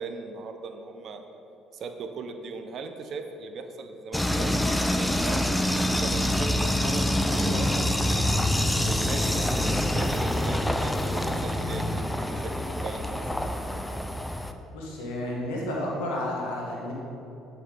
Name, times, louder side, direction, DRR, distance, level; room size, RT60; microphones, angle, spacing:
voice 1, 0.0-1.3 1.7-5.6 6.0-8.2 8.8-13.7, right 4 dB, 55° right, 6 dB, 0.7 m, -39 dB
sound 1, 4.1-14.5, left 1 dB, 5° left, 0.5 m, -27 dB
sound 2, 6.1-12.0, left 2 dB, 55° left, 0.6 m, -32 dB
voice 2, 14.7-16.9, left 1 dB, 85° left, -3 dB, 1.5 m, -31 dB
8.4 x 5.6 x 3.8 m, 2.9 s
supercardioid pair, 75°, 0 cm